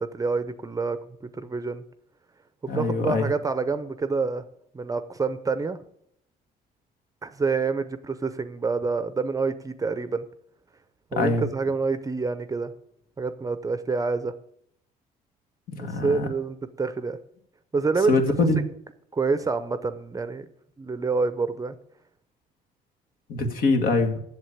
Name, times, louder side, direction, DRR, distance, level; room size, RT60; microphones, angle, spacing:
voice 1, 0.0-1.8 2.6-4.4 4.7-5.8 7.2-10.3 11.1-12.7 13.2-14.3 15.8-17.2 17.7-18.1 19.1-20.5 20.8-21.7, right 4 dB, 20° right, 11 dB, 0.7 m, -27 dB
voice 2, 2.7-3.3 11.2-11.4 15.7-16.3 18.1-18.6 23.3-24.2, left 3 dB, 60° left, 5 dB, 1.9 m, -23 dB
7.8 x 7.3 x 8.4 m, 0.71 s
cardioid pair, 110°, 17 cm